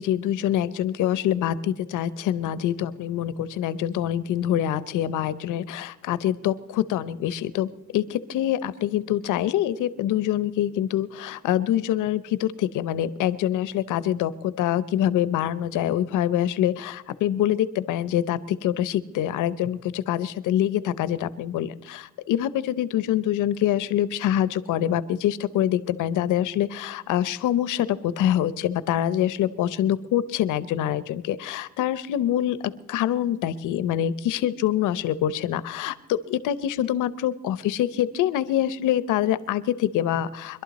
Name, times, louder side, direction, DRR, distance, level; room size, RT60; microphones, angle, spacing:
voice 1, 0.0-32.6 32.9-40.6, left 11 dB, 85° left, 16 dB, 0.8 m, -25 dB
24.5 x 11.5 x 4.2 m, 1.0 s
cardioid pair, 90°, 30 cm